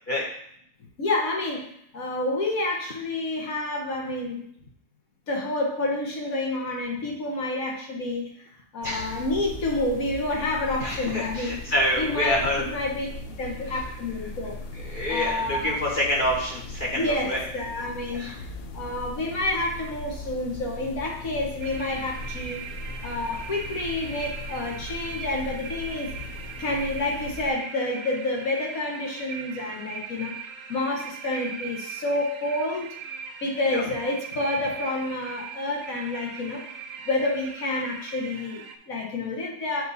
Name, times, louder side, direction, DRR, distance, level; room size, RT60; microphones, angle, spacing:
voice 1, 1.0-4.5 5.3-8.5 8.7-11.6 12.0-13.1 13.4-14.6 15.1-15.8 16.9-18.4 18.7-22.6 23.0-26.1 26.6-30.4 30.7-32.9 33.4-36.6 37.1-39.8, left 2 dB, 70° left, -1 dB, 1.7 m, -29 dB
sound 1, 8.8-27.5, left 2 dB, 55° left, 0.7 m, -39 dB
voice 2, 8.8-9.2 10.8-12.6 14.8-17.4 18.1-18.4 33.7-33.8, left 1 dB, 40° left, -4 dB, 1.0 m, -27 dB
sound 2, 21.6-38.8, right 7 dB, 70° right, 1.0 m, -40 dB
7.6 x 3.3 x 4.1 m, 0.68 s
omnidirectional pair, 1.5 m